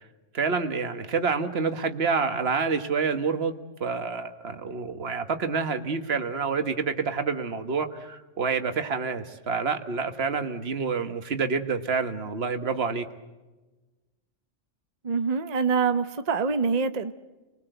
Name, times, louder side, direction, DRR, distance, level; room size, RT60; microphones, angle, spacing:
voice 1, 0.3-13.1, right 5 dB, 55° right, 8 dB, 1.6 m, -28 dB
voice 2, 15.0-17.1, right 5 dB, 35° right, 10 dB, 1.0 m, -25 dB
29.5 x 20.5 x 8.0 m, 1.2 s
omnidirectional pair, 1.3 m